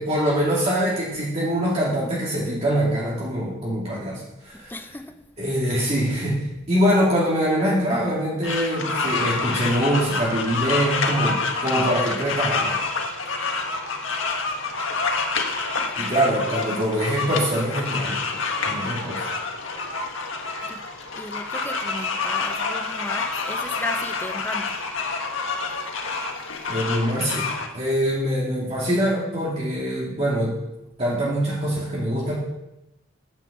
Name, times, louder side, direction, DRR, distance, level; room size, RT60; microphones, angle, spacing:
voice 1, 0.0-5.0 5.4-12.8 16.0-18.2 18.6-19.3 26.7-30.5 31.0-32.3, equal, 30° right, 2.5 m, -24 dB
voice 2, 4.5-5.2 20.7-20.9 21.1-24.8, left 1 dB, 10° left, 0.6 m, -35 dB
sound 1, 8.4-27.7, left 4 dB, 70° left, 1.8 m, -27 dB
9.7 x 9.2 x 7.1 m
head